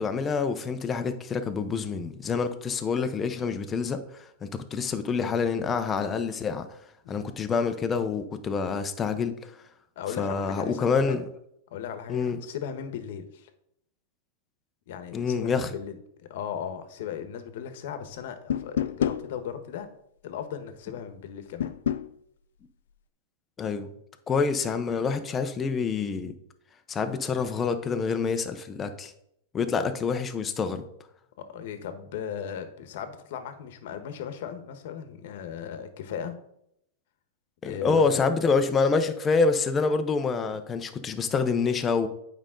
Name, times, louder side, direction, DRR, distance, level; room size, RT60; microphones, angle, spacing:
voice 1, 0.0-6.7 7.1-9.5 10.2-11.2 12.1-12.4 15.1-15.7 23.6-23.9 24.3-26.3 26.9-29.1 29.5-30.8 37.6-42.1, left 5 dB, 20° left, 8 dB, 0.7 m, -27 dB
voice 2, 10.0-11.3 11.7-13.5 14.9-19.9 20.2-21.7 29.6-29.9 31.5-36.3 37.6-38.3, left 8 dB, 60° left, 9 dB, 1.1 m, -37 dB
sound 1, 18.5-19.2 21.6-22.1, left 9 dB, 85° left, 0.4 m, -27 dB
8.9 x 5.1 x 3.8 m, 0.75 s
supercardioid pair, 145°, 0 cm